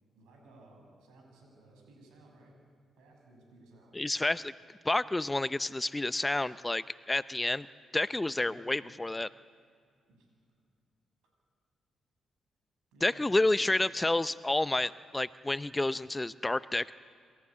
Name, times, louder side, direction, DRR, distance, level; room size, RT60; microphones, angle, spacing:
voice 1, 0.1-2.5 3.0-4.0 8.4-8.7 10.1-10.3 12.9-13.7, right 2 dB, 75° right, 1 dB, 6.5 m, -58 dB
voice 2, 3.9-4.5 4.8-7.7 7.9-9.3 13.0-16.9, left 2 dB, 20° left, 16 dB, 0.6 m, -29 dB
27.5 x 14.5 x 8.6 m, 2.1 s
hypercardioid pair, 45°, 0 cm